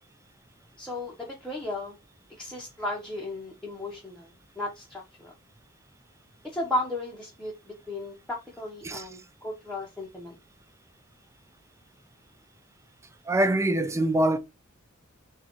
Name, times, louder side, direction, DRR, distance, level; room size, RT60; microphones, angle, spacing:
voice 1, 0.8-2.0 2.4-5.3 6.4-7.5 7.9-10.4, left 1 dB, 5° left, 0.8 m, -35 dB
voice 2, 13.3-14.4, right 1 dB, 15° right, 0.4 m, -24 dB
6.6 x 2.3 x 2.9 m
head